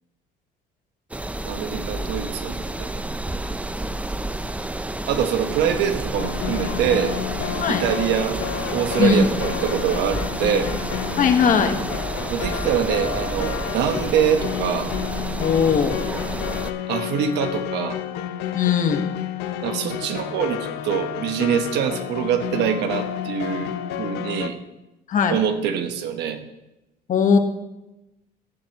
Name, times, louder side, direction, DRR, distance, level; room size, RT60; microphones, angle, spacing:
sound 1, 1.1-16.7, right 2 dB, 10° right, 0.5 m, -30 dB
voice 1, 1.5-3.0 5.1-7.2 7.7-8.4 8.7-10.7 12.3-14.9 16.9-18.0 19.6-24.6 25.3-26.4, right 8 dB, 85° right, 7 dB, 1.2 m, -24 dB
sound 2, 6.2-24.5, left 10 dB, 85° left, 0.7 m, -30 dB
voice 2, 9.0-9.4 11.2-11.8 15.4-16.0 18.5-19.0 25.1-25.4 27.1-27.4, left 6 dB, 50° left, 6 dB, 1.3 m, -19 dB
14.0 x 10.5 x 3.0 m, 0.96 s
cardioid pair, 110°, 17 cm